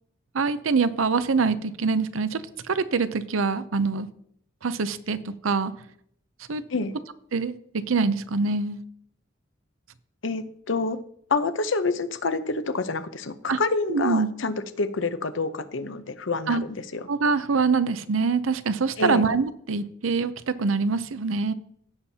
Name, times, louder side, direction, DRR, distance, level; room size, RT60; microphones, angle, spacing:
voice 1, 0.3-4.1 4.6-5.7 6.5-6.6 7.3-8.8 13.5-13.6 13.9-14.3 16.5-16.6 17.1-21.5, right 4 dB, 85° right, 13 dB, 0.6 m, -24 dB
voice 2, 10.2-11.0 11.3-17.0 19.0-19.2, left 3 dB, 70° left, 11 dB, 0.8 m, -27 dB
16.5 x 7.2 x 2.8 m, 0.67 s
head